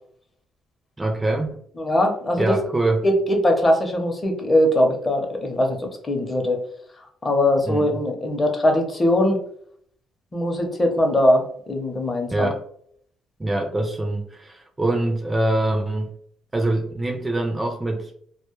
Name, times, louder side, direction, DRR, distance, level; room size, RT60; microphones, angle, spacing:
voice 1, 1.0-1.5 2.4-3.0 7.6-8.0 12.3-12.6 13.4-16.1 16.5-18.1, right 2 dB, 15° right, 3 dB, 0.4 m, -24 dB
voice 2, 1.8-2.6 3.0-6.6 7.2-9.4 10.3-12.5, left 1 dB, 25° left, 3 dB, 0.6 m, -21 dB
2.2 x 2.0 x 2.9 m, 0.62 s
cardioid pair, 105°, 0 cm